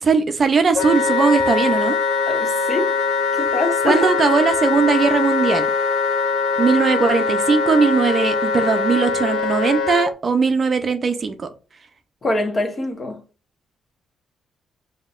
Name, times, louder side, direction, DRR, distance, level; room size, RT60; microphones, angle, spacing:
voice 1, 0.0-2.0 3.8-5.7 6.6-11.5, right 5 dB, 40° right, 0.5 m, -19 dB
Wind instrument woodwind instrument, 0.8-10.1, left 4 dB, 90° left, 0.5 m, -21 dB
voice 2, 2.3-2.9 3.4-4.0 12.2-13.2, left 2 dB, 30° left, 1.2 m, -24 dB
5.4 x 2.8 x 2.4 m
cardioid pair, 90°, 0 cm